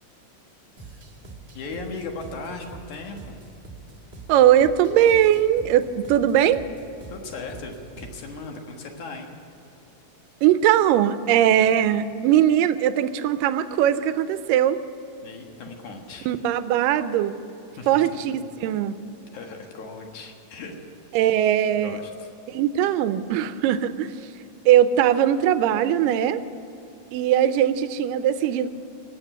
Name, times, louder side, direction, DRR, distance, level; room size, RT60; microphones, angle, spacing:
sound 1, 0.8-8.4, right 3 dB, 35° right, 0.8 m, -44 dB
voice 1, 1.5-3.4 7.1-9.4 15.2-16.3 17.8-18.4 19.3-20.8 21.8-22.3, left 3 dB, 65° left, 2 dB, 2.9 m, -37 dB
voice 2, 4.3-6.6 10.4-14.8 16.3-17.3 17.9-19.0 21.1-22.0 22.5-24.2 24.7-26.4 27.1-28.7, right 11 dB, 85° right, 12 dB, 2.3 m, -20 dB
18.5 x 8.0 x 9.1 m, 2.8 s
omnidirectional pair, 3.8 m